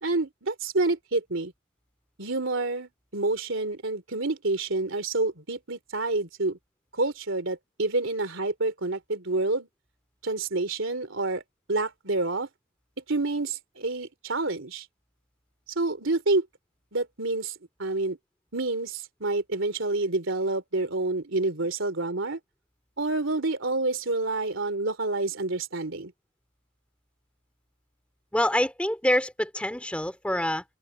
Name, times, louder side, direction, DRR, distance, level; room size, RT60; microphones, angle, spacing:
voice 1, 0.0-1.5 2.2-6.6 6.9-9.7 10.2-11.4 11.7-12.5 13.1-14.8 15.7-16.5 16.9-18.2 18.5-22.4 23.0-26.1, right 2 dB, 70° right, 3.2 m, -28 dB
voice 2, 28.3-30.6, left 1 dB, 5° left, 3.3 m, -26 dB
head